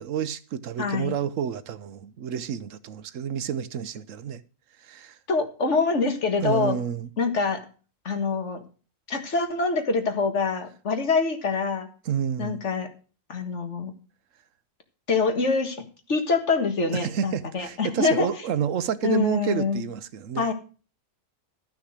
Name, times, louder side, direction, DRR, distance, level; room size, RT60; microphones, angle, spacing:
voice 1, 0.0-4.4 4.8-5.2 6.4-7.1 12.0-12.6 16.9-20.5, right 8 dB, 80° right, 1.1 m, -29 dB
voice 2, 0.8-1.2 5.3-6.8 7.2-7.6 8.1-8.6 9.1-11.9 12.4-12.9 13.3-13.9 15.1-18.3 19.0-19.8 20.4-20.5, left 4 dB, 65° left, 2.0 m, -25 dB
13.0 x 6.0 x 6.5 m
omnidirectional pair, 1.3 m